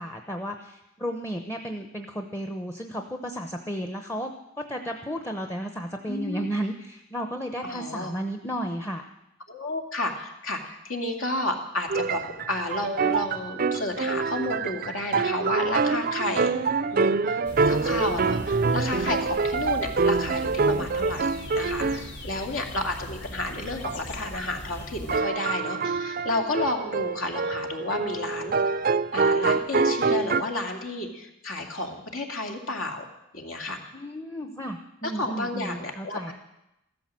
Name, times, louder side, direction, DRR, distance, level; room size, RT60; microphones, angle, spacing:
voice 1, 0.0-9.0 33.9-36.3, equal, 10° left, 5 dB, 0.8 m, -33 dB
voice 2, 6.1-6.5 7.6-8.1 9.5-16.5 16.9-17.4 17.7-33.0 33.3-33.8 35.0-36.3, left 2 dB, 75° left, 3 dB, 2.5 m, -31 dB
sound 1, 11.9-22.1 23.8-24.0 25.1-30.4, right 4 dB, 45° right, 0.5 m, -26 dB
sound 2, 17.4-25.2, left 1 dB, 55° left, 2.2 m, -40 dB
14.5 x 13.0 x 7.6 m, 0.87 s
head